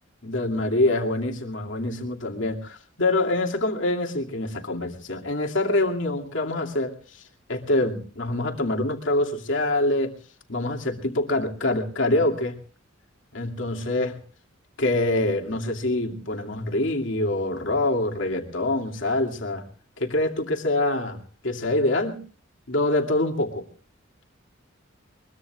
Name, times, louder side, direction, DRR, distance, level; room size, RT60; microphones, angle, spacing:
voice 1, 0.2-7.2 7.5-10.2 10.5-12.6 13.3-14.2 14.8-19.6 20.0-22.2 22.7-23.7, left 2 dB, 70° left, 2 dB, 2.5 m, -25 dB
23.0 x 22.0 x 2.4 m, 0.37 s
head